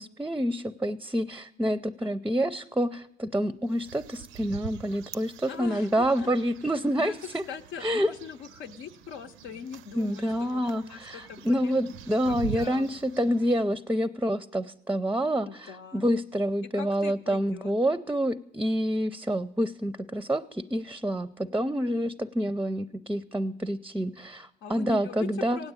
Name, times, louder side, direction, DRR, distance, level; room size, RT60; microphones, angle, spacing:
voice 1, 0.0-7.4 7.8-8.1 10.0-25.6, equal, 10° right, 12 dB, 0.5 m, -28 dB
sound 1, 3.7-13.6, right 11 dB, 85° right, 0.5 m, -45 dB
voice 2, 5.5-6.3 7.0-7.2 7.5-11.7 12.3-12.9 15.4-16.1 16.7-17.7 24.6-25.7, left 7 dB, 90° left, 5 dB, 0.8 m, -41 dB
16.5 x 8.8 x 8.9 m, 0.79 s
cardioid pair, 90°, 20 cm